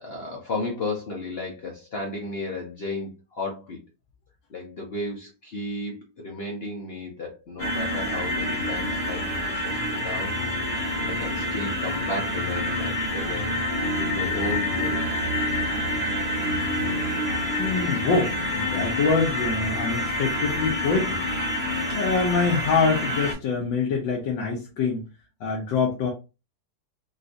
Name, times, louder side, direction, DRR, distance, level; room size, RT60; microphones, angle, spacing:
voice 1, 0.0-3.8 4.5-10.3 10.7-13.5 14.0-15.1, left 2 dB, 65° left, 0.6 m, -34 dB
sound 1, 7.6-23.3, left 1 dB, 20° left, 0.8 m, -27 dB
voice 2, 17.6-21.2 21.9-25.0 25.4-26.1, left 4 dB, 85° left, 1.5 m, -25 dB
3.8 x 2.4 x 2.5 m
omnidirectional pair, 2.0 m